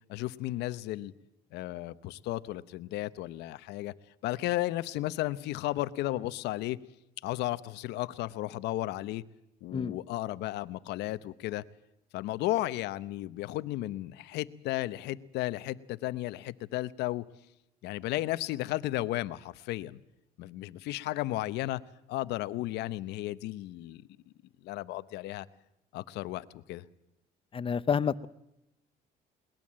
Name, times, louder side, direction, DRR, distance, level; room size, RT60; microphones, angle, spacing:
voice 1, 0.1-1.1 1.5-3.9 4.2-6.8 7.2-9.2 9.6-11.6 12.1-17.2 17.8-20.0 20.4-21.8 22.1-24.0 24.6-25.5 25.9-26.8, left 16 dB, 85° left, 0.9 m, -34 dB
voice 2, 27.5-28.3, left 6 dB, 30° left, 0.7 m, -29 dB
21.5 x 20.0 x 7.5 m
cardioid pair, 110°, 17 cm